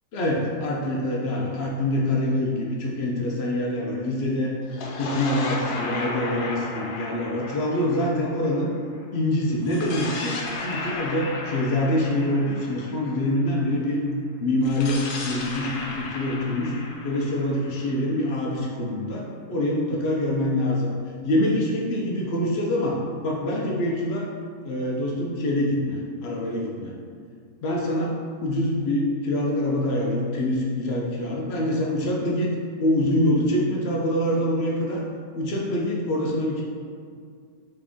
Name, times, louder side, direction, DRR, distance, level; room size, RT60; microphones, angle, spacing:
voice 1, 0.1-4.5 5.0-8.7 9.1-14.0 14.4-16.7 17.0-20.9 21.2-24.3 24.6-26.9 27.6-28.1 28.4-32.5 32.8-35.0 35.3-36.6, left 1 dB, 65° left, -2 dB, 0.6 m, -25 dB
sound 1, 4.6-9.0 9.6-13.6 14.6-18.4, left 2 dB, 85° left, 1.2 m, -34 dB
3.8 x 3.3 x 3.4 m, 2.1 s
omnidirectional pair, 1.6 m